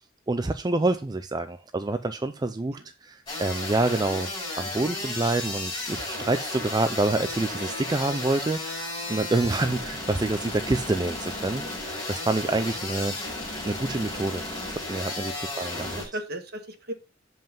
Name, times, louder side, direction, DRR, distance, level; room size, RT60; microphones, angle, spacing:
voice 1, 0.3-4.3 4.6-13.1 13.7-16.0, right 2 dB, 20° right, 0.4 m, -27 dB
sound 1, 3.3-16.0, left 2 dB, 20° left, 5.3 m, -34 dB
voice 2, 15.6-16.9, right 1 dB, 55° right, 1.5 m, -37 dB
7.6 x 5.4 x 5.2 m
head